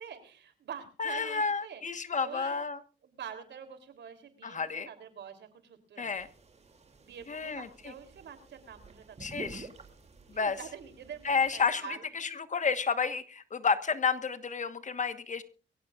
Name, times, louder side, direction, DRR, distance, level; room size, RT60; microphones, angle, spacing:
voice 1, 0.0-1.8 2.2-2.6 3.0-6.1 7.0-9.4 10.3-12.4, right 8 dB, 75° right, 8 dB, 3.3 m, -46 dB
voice 2, 1.0-2.8 4.4-4.9 6.0-6.3 7.3-7.9 9.2-9.7 10.3-10.6 11.2-15.4, left 5 dB, 40° left, 11 dB, 1.4 m, -31 dB
sound 1, 6.2-11.6, right 3 dB, 35° right, 2.8 m, -51 dB
23.5 x 16.5 x 2.5 m, 0.35 s
cardioid pair, 80°, 19 cm